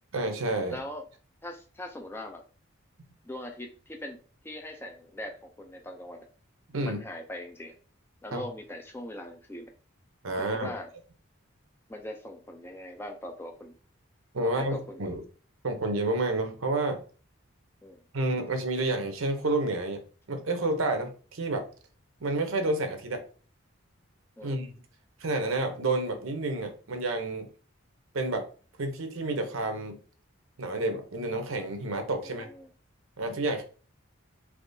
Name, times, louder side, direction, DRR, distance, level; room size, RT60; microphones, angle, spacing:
voice 1, 0.1-0.8 6.7-7.0 8.3-8.4 10.2-10.7 14.3-15.2 15.6-17.0 18.1-20.0 20.3-21.7 22.2-23.2 24.4-24.7 25.2-27.5 28.1-28.5 28.8-30.0 30.6-32.5 33.2-33.6, right 2 dB, 75° right, 6 dB, 0.7 m, -29 dB
voice 2, 0.7-1.0 1.4-2.4 3.2-4.2 4.4-6.3 6.8-7.7 8.2-9.7 10.4-10.9 11.9-13.7 14.6-15.1 17.8-18.0 24.4-24.6 32.2-32.7, left 1 dB, 10° left, 3 dB, 0.4 m, -41 dB
3.5 x 2.9 x 2.6 m, 0.39 s
head